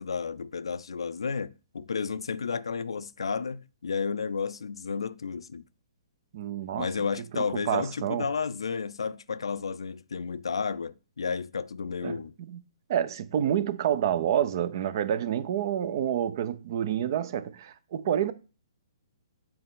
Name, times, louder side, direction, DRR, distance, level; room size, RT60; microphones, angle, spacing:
voice 1, 0.0-5.6 6.8-12.3, left 5 dB, 80° left, 0.4 m, -32 dB
voice 2, 6.3-6.9 7.3-8.3 12.0-12.6 12.9-18.3, right 10 dB, 50° right, 0.6 m, -28 dB
7.7 x 4.2 x 3.7 m
hypercardioid pair, 130°, 3 cm